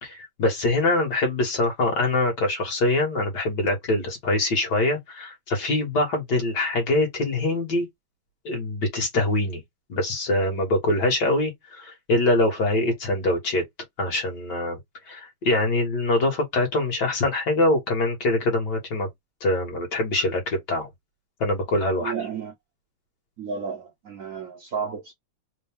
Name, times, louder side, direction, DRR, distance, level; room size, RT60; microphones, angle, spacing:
voice 1, 0.0-7.9 8.5-9.6 9.9-13.6 14.0-14.8 15.1-19.1 19.4-20.9 21.4-22.1, left 2 dB, 60° left, 2.0 m, -24 dB
voice 2, 22.0-22.5 23.4-25.1, right 6 dB, 60° right, 0.9 m, -32 dB
3.9 x 2.3 x 3.5 m
omnidirectional pair, 2.1 m